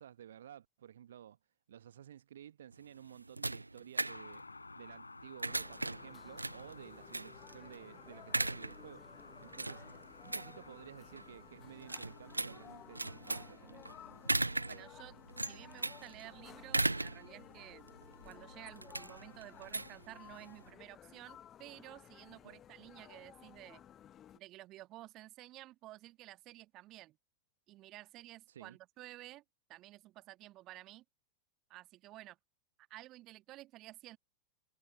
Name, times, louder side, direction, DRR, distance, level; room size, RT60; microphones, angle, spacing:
voice 1, 0.0-1.4 1.7-4.4 4.7-9.0 9.4-9.8 10.2-14.7 22.4-22.6 28.5-28.8, right 10 dB, 65° right, 1.3 m, -54 dB
sound 1, 2.7-20.7, right 2 dB, 85° right, 0.4 m, -39 dB
Car passing by, 4.1-14.0 14.3-14.4, left 3 dB, 80° left, 5.8 m, -56 dB
sound 2, 5.5-24.4, left 10 dB, 30° left, 0.8 m, -57 dB
voice 2, 14.7-15.2 15.5-17.9 18.2-23.9 24.3-27.2 27.7-29.4 29.7-31.0 31.7-32.4 32.9-34.2, right 16 dB, 35° right, 1.6 m, -53 dB
figure-of-eight pair, 90°, 0 cm